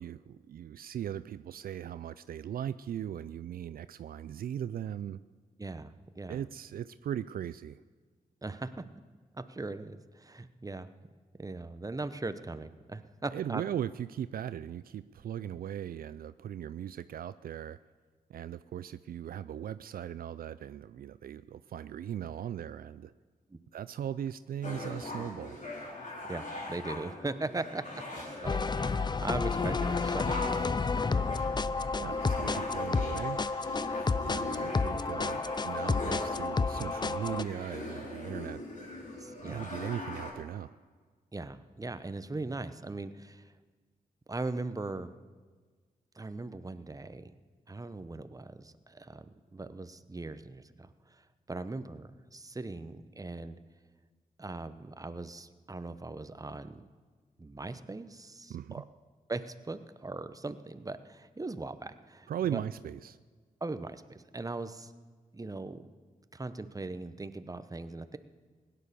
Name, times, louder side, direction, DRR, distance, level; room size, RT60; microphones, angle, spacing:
voice 1, 0.0-5.2 6.3-7.8 13.3-17.8 18.3-23.1 23.7-25.6 31.9-33.4 34.2-38.6 39.4-40.8 58.5-58.8 62.3-63.2, right 10 dB, 75° right, 14 dB, 0.4 m, -38 dB
voice 2, 5.6-6.4 8.4-8.8 9.4-10.9 11.4-13.6 23.5-23.6 26.3-28.0 28.4-30.7 31.0-31.4 39.2-39.7 41.3-43.5 44.3-45.1 46.1-47.3 47.7-53.6 54.4-56.9 57.4-58.8 59.3-62.6 63.6-64.9 65.3-65.9 66.3-68.2, right 2 dB, 25° right, 11 dB, 0.9 m, -40 dB
sound 1, 24.6-40.3, left 2 dB, 55° left, 3.9 m, -41 dB
sound 2, 28.4-37.4, left 4 dB, 30° left, 0.5 m, -31 dB
16.5 x 9.9 x 6.8 m, 1.5 s
cardioid pair, 55°, 15 cm